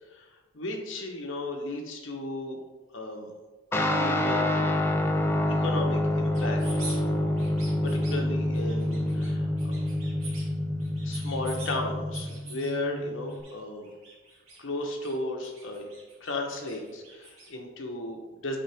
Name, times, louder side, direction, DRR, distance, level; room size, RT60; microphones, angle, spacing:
voice 1, 0.5-2.6 2.9-3.3 3.7-4.7 5.5-6.6 6.9-7.3 7.8-9.8 11.0-13.9 14.6-15.8 16.2-18.6, left 2 dB, 65° left, 1 dB, 1.1 m, -35 dB
Guitar, 3.7-13.4, left 1 dB, 10° left, 0.4 m, -27 dB
sound 1, 6.3-7.0 7.3-8.2 8.5-9.3 9.6-10.5 10.8-11.7 12.1-12.7 13.3-13.5 13.8-15.1 15.4-17.5, right 3 dB, 75° right, 2.1 m, -45 dB
7.1 x 4.8 x 3.5 m, 1.2 s
head